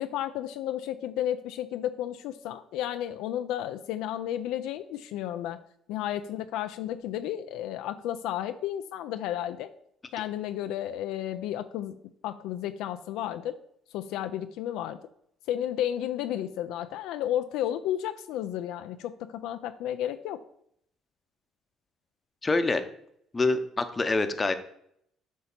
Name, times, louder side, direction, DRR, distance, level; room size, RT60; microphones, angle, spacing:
voice 1, 0.0-5.6 5.9-9.7 10.1-12.0 12.2-13.5 13.9-15.0 15.5-20.4, left 11 dB, 80° left, 9 dB, 0.3 m, -32 dB
voice 2, 22.4-22.8 23.3-24.5, left 3 dB, 25° left, 9 dB, 0.7 m, -25 dB
7.9 x 2.8 x 5.9 m, 0.70 s
supercardioid pair, 80°, 0 cm